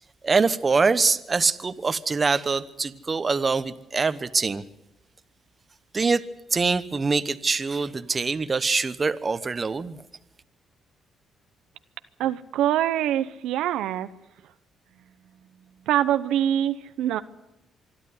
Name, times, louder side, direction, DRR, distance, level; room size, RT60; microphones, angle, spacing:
voice 1, 0.2-4.6 5.9-6.2 6.5-10.0, right 4 dB, 30° right, 12 dB, 1.1 m, -24 dB
voice 2, 12.2-14.1 15.9-17.2, right 11 dB, 90° right, 11 dB, 0.8 m, -24 dB
25.5 x 12.0 x 9.6 m, 0.91 s
cardioid pair, 90°, 0 cm